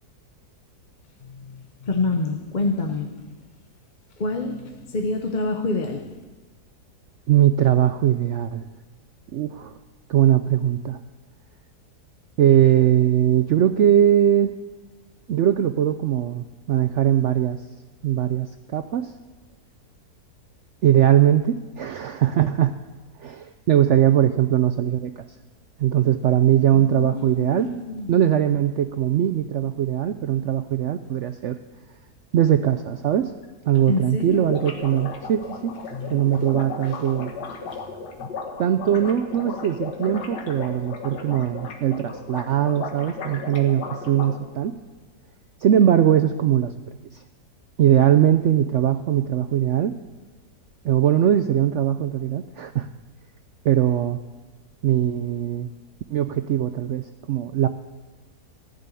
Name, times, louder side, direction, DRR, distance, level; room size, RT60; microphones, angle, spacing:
voice 1, 1.3-3.2 4.2-6.0 26.7-28.1 33.9-34.5 35.9-36.4 38.2-38.3, left 3 dB, 35° left, 4 dB, 0.8 m, -27 dB
voice 2, 7.3-8.6 9.3-9.8 10.1-11.0 12.4-14.5 15.3-17.6 18.0-19.1 20.8-22.7 23.2-25.2 25.8-27.7 28.1-31.6 32.3-33.3 33.6-35.7 36.1-37.3 38.6-44.7 45.6-46.7 47.1-47.2 47.8-49.9 50.8-52.9 53.6-54.2 54.8-55.7 56.1-57.7, right 11 dB, 70° right, 10 dB, 0.7 m, -20 dB
sound 1, 33.1-33.2 33.4-33.5 33.8-33.9 34.1-44.4, left 4 dB, 85° left, 2.0 m, -35 dB
14.5 x 6.8 x 9.7 m, 1.2 s
omnidirectional pair, 1.8 m